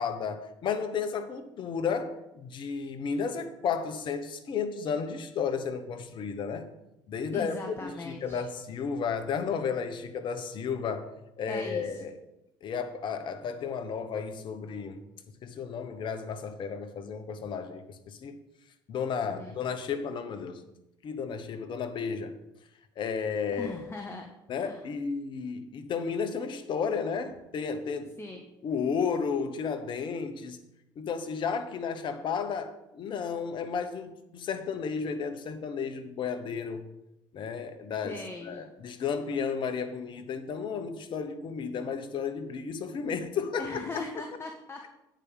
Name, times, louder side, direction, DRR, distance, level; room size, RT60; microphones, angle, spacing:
voice 1, 0.0-6.7 7.1-11.1 11.4-12.1 12.6-15.0 15.4-18.4 18.9-20.7 21.0-22.4 23.0-23.8 24.5-28.1 28.6-30.6 31.0-36.9 37.3-38.2 38.4-43.8, left 6 dB, 50° left, 1.2 m, -33 dB
voice 2, 7.3-8.4 11.5-12.0 19.2-19.5 23.5-24.3 24.6-24.9 28.2-28.4 38.0-38.7 43.6-44.9, left 3 dB, 25° left, 1.3 m, -39 dB
8.9 x 5.1 x 7.5 m
hypercardioid pair, 60°, 10 cm